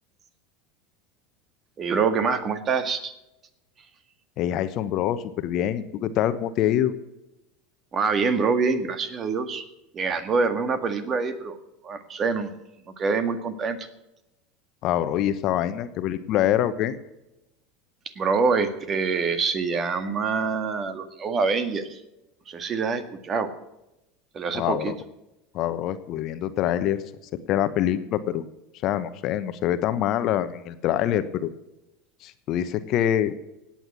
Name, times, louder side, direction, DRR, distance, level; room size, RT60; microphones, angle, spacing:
voice 1, 1.8-3.1 7.9-9.6 9.9-11.6 11.8-12.5 13.0-13.9 18.2-22.0 22.5-23.5 24.3-24.9, right 5 dB, 35° right, 10 dB, 1.8 m, -25 dB
voice 2, 4.4-6.9 14.8-17.0 24.5-24.9 25.5-27.0 27.5-28.4 28.8-31.5 32.2-33.3, left 11 dB, 50° left, 12 dB, 1.1 m, -25 dB
17.0 x 9.0 x 6.1 m, 0.92 s
figure-of-eight pair, 75°, 0 cm